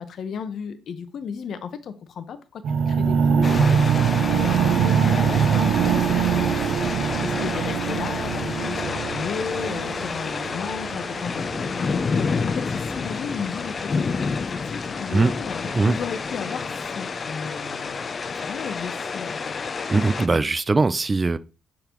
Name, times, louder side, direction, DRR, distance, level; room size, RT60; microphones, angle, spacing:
voice 1, 0.0-6.6 7.2-19.5, left 6 dB, 60° left, 0.8 m, -34 dB
sound 1, 2.6-12.6, right 7 dB, 70° right, 0.7 m, -23 dB
sound 2, 3.4-20.3, left 5 dB, 40° left, 0.5 m, -29 dB
voice 2, 19.9-21.4, right 3 dB, 25° right, 0.4 m, -20 dB
10.0 x 3.9 x 3.0 m
cardioid pair, 90°, 0 cm